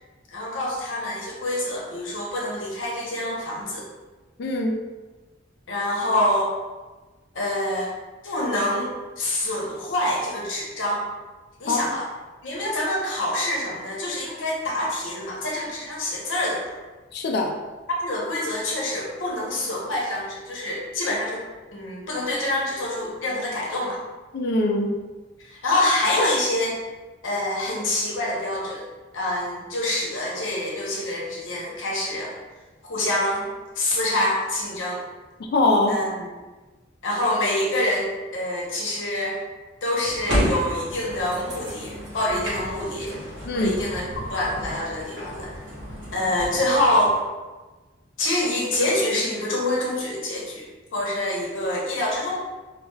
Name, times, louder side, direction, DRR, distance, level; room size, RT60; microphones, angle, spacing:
voice 1, 0.3-3.8 5.7-6.5 7.3-7.9 8.2-11.1 11.6-12.1 12.4-16.7 17.9-21.4 21.7-24.0 25.4-26.8 27.2-28.8 29.1-32.3 32.8-33.5 33.8-35.0 35.9-36.3 37.0-39.4 39.8-43.2 43.5-45.5 46.1-47.2 48.2-50.7 50.9-52.4, left 1 dB, 90° left, -4 dB, 0.8 m, -26 dB
voice 2, 4.4-4.8 11.7-11.8 17.1-17.5 24.3-24.9 35.5-36.0 43.5-43.7, left 2 dB, 60° left, 2 dB, 0.4 m, -22 dB
sound 1, 40.0-47.3, equal, 65° right, 0.8 m, -32 dB
2.4 x 2.2 x 3.1 m, 1.2 s
head